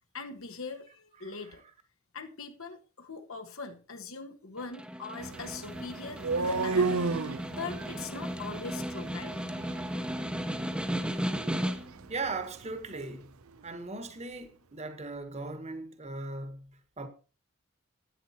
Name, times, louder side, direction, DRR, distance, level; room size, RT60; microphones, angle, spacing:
voice 1, 0.1-1.6 2.1-7.1 7.5-9.3, left 4 dB, 70° left, 1.5 m, -41 dB
voice 2, 1.2-1.7 12.1-13.4 13.6-17.1, right 3 dB, 30° right, 1.5 m, -39 dB
Snare drum, 4.6-12.1, equal, 5° right, 1.0 m, -35 dB
sound 1, 5.2-13.2, right 4 dB, 85° right, 0.7 m, -35 dB
12.5 x 9.3 x 4.3 m
head